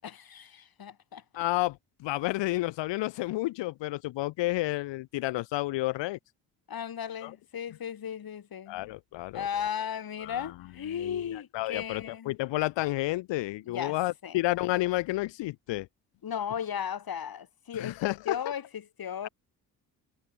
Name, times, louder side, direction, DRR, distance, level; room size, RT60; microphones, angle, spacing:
voice 1, 0.0-1.2 6.7-8.9 9.3-12.3 13.6-14.0 14.2-14.4 16.2-19.3, left 8 dB, 55° left, 5.1 m, -36 dB
voice 2, 1.4-6.2 7.2-7.3 8.7-9.4 10.2-10.5 11.0-15.9 17.7-18.4, left 18 dB, 85° left, 2.5 m, -31 dB
supercardioid pair, 65°, 42 cm